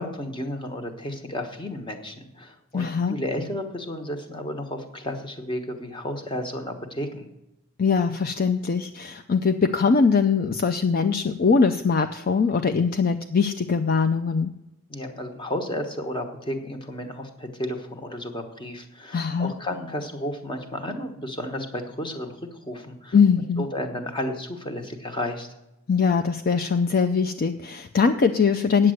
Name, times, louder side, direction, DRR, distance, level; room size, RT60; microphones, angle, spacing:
voice 1, 0.0-7.2 14.9-22.3 22.7-23.1 23.6-25.5, left 1 dB, 20° left, 5 dB, 1.2 m, -32 dB
voice 2, 2.7-3.2 7.8-14.5 19.1-19.5 23.1-23.7 25.9-28.9, left 5 dB, 45° left, 9 dB, 0.4 m, -22 dB
9.3 x 7.5 x 7.7 m, 0.93 s
head